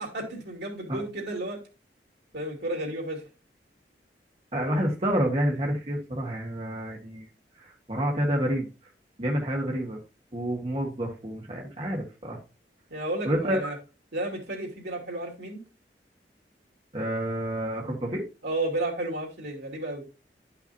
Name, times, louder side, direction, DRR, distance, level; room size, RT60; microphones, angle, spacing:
voice 1, 0.0-1.6 2.3-3.2 12.9-13.8 14.1-15.6 18.4-20.0, right 2 dB, 75° right, 2.7 m, -32 dB
voice 2, 4.5-7.3 7.6-8.7 9.2-10.0 10.3-12.4 13.2-13.7 16.9-18.2, equal, 35° right, 1.6 m, -28 dB
11.5 x 5.7 x 2.7 m
head